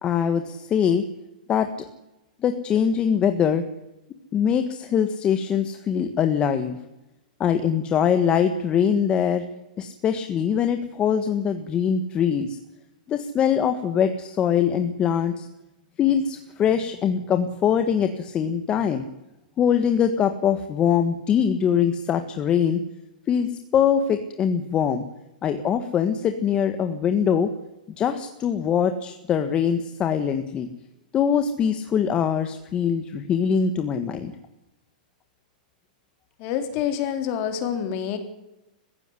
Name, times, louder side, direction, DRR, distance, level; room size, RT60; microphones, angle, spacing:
voice 1, 0.0-1.0 1.5-1.7 2.4-3.6 4.3-6.8 7.4-9.4 9.8-12.6 13.1-15.5 16.0-19.0 19.6-22.8 23.3-25.0 25.4-27.5 28.0-30.7 31.1-34.3, left 8 dB, 20° left, 8 dB, 1.5 m, -22 dB
voice 2, 36.4-38.2, left 9 dB, 40° left, 7 dB, 3.8 m, -27 dB
22.0 x 15.5 x 9.8 m, 0.95 s
hypercardioid pair, 150°, 4 cm